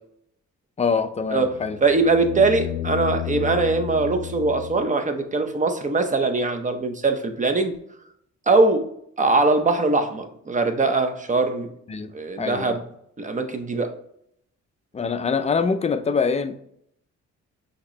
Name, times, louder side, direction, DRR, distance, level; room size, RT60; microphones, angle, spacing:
voice 1, 0.8-1.8 11.9-12.1 12.4-12.8 14.9-16.6, left 5 dB, 20° left, 9 dB, 0.4 m, -24 dB
sound 1, 1.2-5.3 7.7-7.8, left 12 dB, 90° left, 0.5 m, -32 dB
voice 2, 1.3-7.7 8.5-8.9 9.2-11.7 12.1-12.8 13.2-13.9, right 3 dB, 25° right, 7 dB, 0.7 m, -21 dB
5.7 x 2.9 x 3.1 m, 0.71 s
cardioid pair, 90°, 30 cm